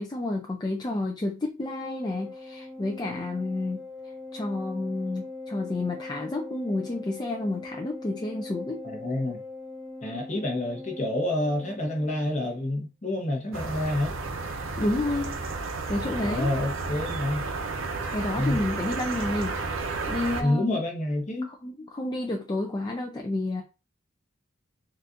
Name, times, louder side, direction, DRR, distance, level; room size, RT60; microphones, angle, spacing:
voice 1, 0.0-3.8 4.3-8.8 14.8-15.4 15.9-16.5 18.1-19.6 20.1-20.8 21.5-23.6, left 2 dB, 20° left, 0.4 m, -30 dB
Organ, 1.6-12.4, left 2 dB, 5° right, 1.2 m, -41 dB
voice 2, 8.8-9.4 10.0-14.2 16.2-17.4 18.4-18.6 20.4-21.5, left 1 dB, 35° left, 0.9 m, -28 dB
sound 1, 13.5-20.4, right 3 dB, 70° right, 0.6 m, -32 dB
4.0 x 2.4 x 2.5 m
head